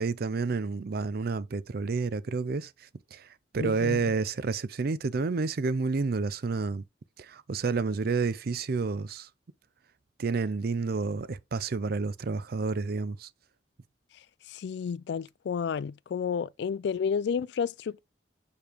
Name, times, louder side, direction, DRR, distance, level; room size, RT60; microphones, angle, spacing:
voice 1, 0.0-6.8 7.2-9.3 10.2-13.3, right 4 dB, 55° right, 0.5 m, -30 dB
voice 2, 3.6-4.0 14.5-18.0, left 6 dB, 65° left, 0.3 m, -31 dB
6.8 x 5.1 x 3.0 m
head